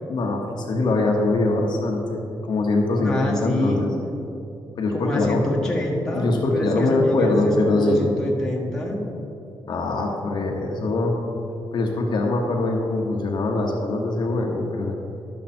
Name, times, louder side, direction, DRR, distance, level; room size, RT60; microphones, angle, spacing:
voice 1, 0.1-2.2 2.5-3.9 4.8-5.7 6.1-8.1 9.7-11.2 11.7-14.9, left 2 dB, 55° left, 1 dB, 1.0 m, -23 dB
voice 2, 3.0-3.9 4.9-9.0, left 1 dB, 5° left, -4 dB, 1.5 m, -27 dB
11.5 x 6.7 x 4.3 m, 2.8 s
wide cardioid pair, 145°, 9 cm